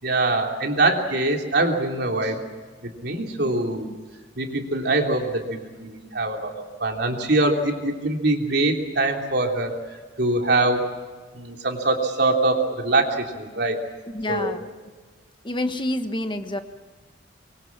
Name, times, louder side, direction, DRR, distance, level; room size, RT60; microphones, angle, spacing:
voice 1, 0.0-2.4 3.0-3.9 4.4-6.5 6.8-10.8 11.3-13.8 14.3-14.6, right 2 dB, 60° right, 2 dB, 3.4 m, -23 dB
voice 2, 14.1-14.7 15.4-16.6, left 1 dB, 25° left, 8 dB, 1.2 m, -28 dB
24.5 x 23.5 x 7.3 m, 1.4 s
head